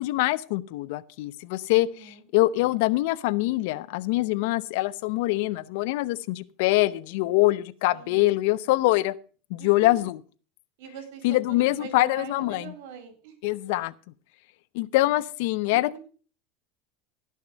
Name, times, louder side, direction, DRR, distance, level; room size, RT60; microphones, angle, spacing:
voice 1, 0.0-1.9 2.3-9.1 9.5-10.1 11.2-12.7 13.4-13.9 14.7-16.0, left 18 dB, 70° left, 19 dB, 0.7 m, -24 dB
voice 2, 1.7-2.2 7.9-8.3 9.6-9.9 10.8-13.8 15.7-16.0, right 7 dB, 75° right, 7 dB, 4.0 m, -43 dB
17.0 x 6.6 x 5.2 m, 0.39 s
supercardioid pair, 115°, 0 cm